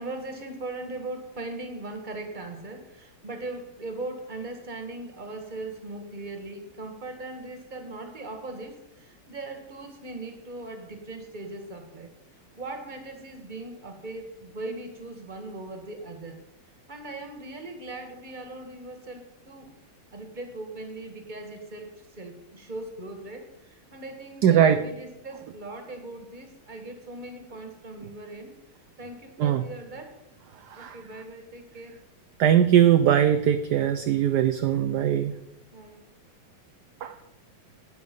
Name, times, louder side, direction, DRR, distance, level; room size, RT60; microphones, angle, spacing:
voice 1, 0.0-12.1 12.5-16.4 16.9-19.7 20.1-28.5 29.0-30.2 30.7-32.0 35.7-36.0, right 2 dB, 25° right, 5 dB, 1.8 m, -39 dB
voice 2, 24.4-24.8 29.4-29.6 30.7-31.0 32.4-35.3 37.0-37.1, right 10 dB, 65° right, 8 dB, 1.1 m, -20 dB
11.5 x 9.7 x 5.4 m, 0.88 s
omnidirectional pair, 2.2 m